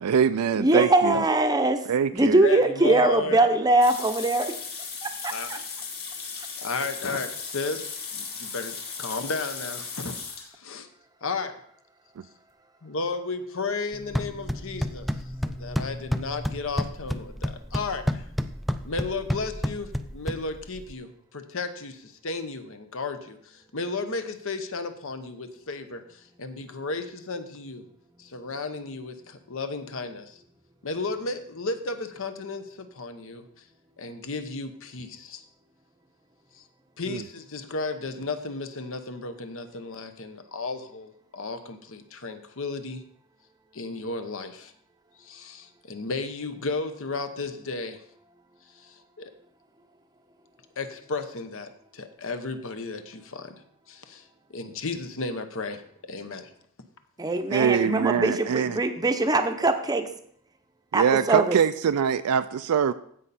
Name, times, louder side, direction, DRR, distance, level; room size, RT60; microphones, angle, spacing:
voice 1, 0.0-1.2 1.8-2.4 37.1-37.2 57.5-58.8 60.9-62.9, right 7 dB, 80° right, 10 dB, 0.4 m, -23 dB
voice 2, 0.6-1.8 2.1-4.5 57.2-60.1 60.9-61.6, right 2 dB, 15° right, 7 dB, 0.7 m, -22 dB
voice 3, 2.4-3.4 5.3-5.5 6.6-10.9 11.2-11.5 12.8-15.1 15.4-18.2 18.8-27.8 28.2-30.4 30.8-33.6 34.0-35.4 36.5-36.6 37.0-43.0 43.7-44.7 45.2-48.0 48.7-49.3 50.8-53.6 53.9-55.8 56.1-56.5, left 3 dB, 60° left, 9 dB, 0.9 m, -34 dB
sound 1, 3.8-10.5, left 5 dB, 45° left, 2.1 m, -36 dB
sound 2, 13.9-20.9, equal, ahead, 0.3 m, -31 dB
15.0 x 5.4 x 4.2 m, 0.64 s
head